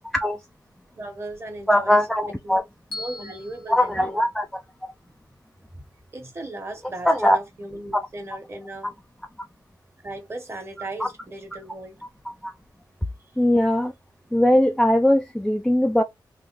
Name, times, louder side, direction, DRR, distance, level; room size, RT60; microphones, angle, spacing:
voice 1, 1.0-2.6 2.9-4.2 6.1-9.0 10.0-12.0 13.3-13.4, right 2 dB, 35° right, 1.4 m, -37 dB
voice 2, 1.7-2.6 3.7-4.5 7.1-7.4 11.0-11.1 12.4-12.5 13.4-13.9 14.3-16.0, left 1 dB, 5° left, 0.4 m, -20 dB
Bell, 2.9-5.1, left 2 dB, 90° left, 1.6 m, -41 dB
3.9 x 2.3 x 3.0 m
cardioid pair, 85°, 8 cm